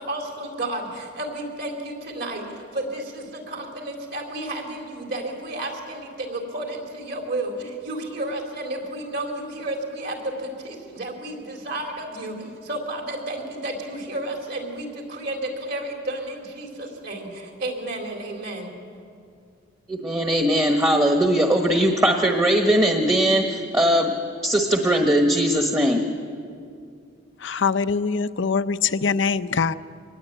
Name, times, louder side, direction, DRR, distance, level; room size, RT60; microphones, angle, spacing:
voice 1, 0.0-18.7, right 1 dB, 55° right, 2 dB, 4.2 m, -32 dB
voice 2, 19.9-24.1 24.4-26.0, right 1 dB, 15° right, 3 dB, 1.3 m, -20 dB
voice 3, 27.4-29.7, left 5 dB, 65° left, 13 dB, 0.6 m, -23 dB
24.5 x 20.0 x 9.0 m, 2.3 s
head